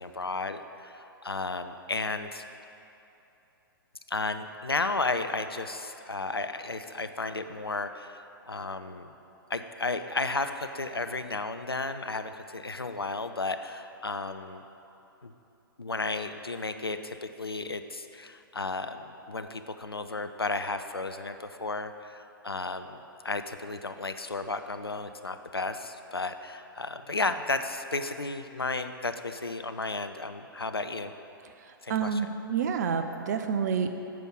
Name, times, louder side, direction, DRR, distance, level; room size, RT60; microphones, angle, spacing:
voice 1, 0.0-2.4 4.1-9.1 9.5-14.6 15.2-15.3 15.8-31.1 31.8-32.2, left 3 dB, 85° left, 9 dB, 0.5 m, -33 dB
voice 2, 31.6-33.9, right 6 dB, 45° right, 7 dB, 0.6 m, -29 dB
9.3 x 5.3 x 6.1 m, 2.9 s
figure-of-eight pair, 115°, 12 cm